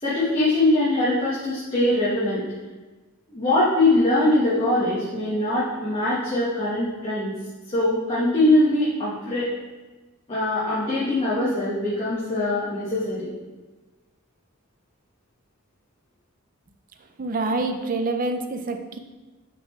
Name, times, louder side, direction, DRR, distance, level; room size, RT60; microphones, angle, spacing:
voice 1, 0.0-2.4 3.3-7.3 7.7-9.4 10.3-13.3, left 1 dB, 25° left, -10 dB, 1.3 m, -22 dB
voice 2, 17.2-19.0, right 2 dB, 40° right, 6 dB, 0.5 m, -26 dB
5.8 x 3.9 x 4.3 m, 1.2 s
head